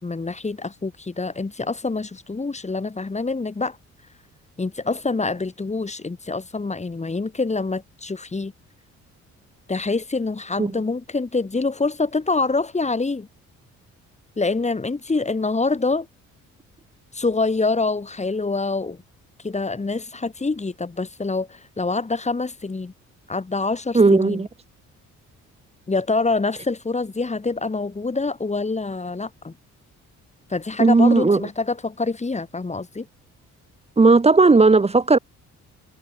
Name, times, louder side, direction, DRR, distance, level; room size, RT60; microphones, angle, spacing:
voice 1, 0.0-3.8 4.6-8.5 9.7-13.3 14.4-16.1 17.1-19.0 19.4-22.9 23.3-24.5 25.9-29.5 30.5-33.1, left 3 dB, 20° left, 4.1 m, -25 dB
voice 2, 23.9-24.5 30.8-31.4 34.0-35.2, right 3 dB, 20° right, 1.4 m, -15 dB
cardioid pair, 90°, 30 cm